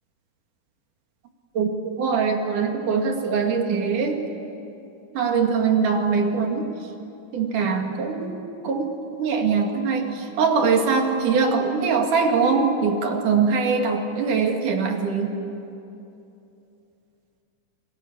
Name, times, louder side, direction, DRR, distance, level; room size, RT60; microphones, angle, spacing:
voice 1, 1.6-4.2 5.2-6.7 7.3-8.3 8.6-8.9 9.2-15.3, right 5 dB, 70° right, 3 dB, 3.5 m, -22 dB
29.5 x 20.5 x 8.5 m, 2.8 s
omnidirectional pair, 3.8 m